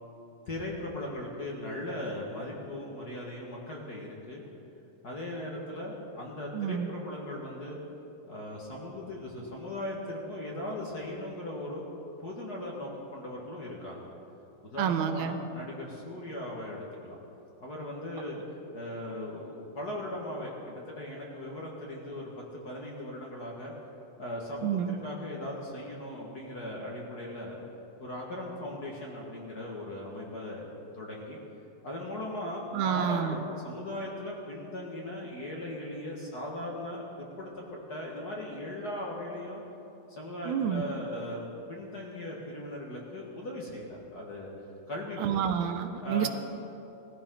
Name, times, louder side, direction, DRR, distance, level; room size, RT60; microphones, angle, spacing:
voice 1, 0.5-4.4 5.0-7.8 8.3-11.9 12.2-14.1 14.6-17.1 17.6-18.4 18.7-23.7 24.2-27.6 28.0-30.7 30.9-31.4 31.8-37.6 37.9-39.6 40.1-44.5 44.9-45.5 46.0-46.3, left 1 dB, 40° left, -3 dB, 1.8 m, -38 dB
voice 2, 6.5-6.9 14.8-15.4 24.6-25.0 32.7-33.4 40.5-40.8 45.2-46.3, right 8 dB, 80° right, 9 dB, 2.1 m, -29 dB
19.5 x 14.5 x 3.9 m, 2.9 s
omnidirectional pair, 3.4 m